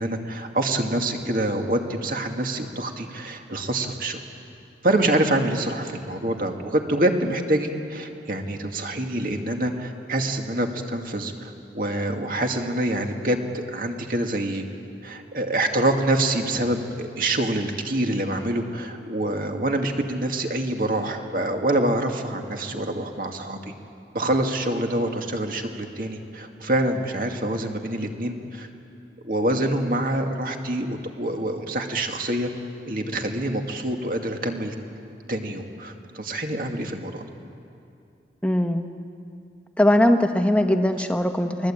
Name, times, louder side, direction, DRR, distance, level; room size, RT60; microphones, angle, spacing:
voice 1, 0.0-4.2 4.8-14.6 15.0-23.7 24.1-28.7 29.2-32.5 32.9-34.7 35.3-37.2, right 1 dB, 50° right, 3 dB, 2.2 m, -26 dB
voice 2, 38.4-38.9 39.8-41.7, left 1 dB, 5° left, 6 dB, 1.2 m, -20 dB
29.5 x 21.5 x 8.9 m, 2.6 s
head